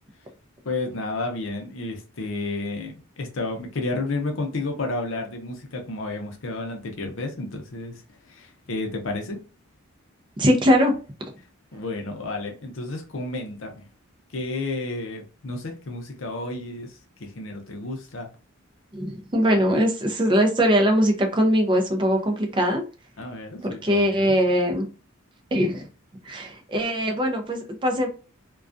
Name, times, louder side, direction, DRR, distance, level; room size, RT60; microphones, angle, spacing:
voice 1, 0.6-8.0 8.3-9.4 11.7-13.8 14.3-18.3 23.2-24.4, left 2 dB, 65° left, 3 dB, 0.6 m, -31 dB
voice 2, 10.4-10.9 18.9-22.8 23.8-24.9 25.5-25.9 26.2-28.1, equal, 25° right, 3 dB, 0.4 m, -21 dB
2.3 x 2.2 x 2.5 m, 0.34 s
head